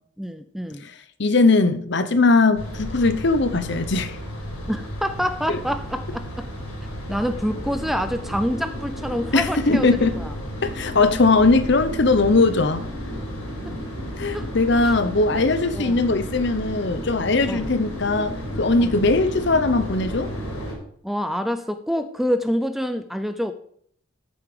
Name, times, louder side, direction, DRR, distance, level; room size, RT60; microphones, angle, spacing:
voice 1, 0.2-0.8 4.7-6.5 7.1-10.3 14.3-14.5 14.8-14.9 15.3-15.4 15.7-16.1 17.5-17.7 18.8-19.0 21.0-23.5, equal, ahead, 0.4 m, -27 dB
voice 2, 1.2-4.2 5.5-5.6 9.3-10.2 10.6-12.9 14.2-20.3, left 3 dB, 55° left, 0.9 m, -20 dB
sound 1, 2.5-20.7, equal, 85° left, 4.4 m, -32 dB
13.5 x 7.0 x 5.0 m
head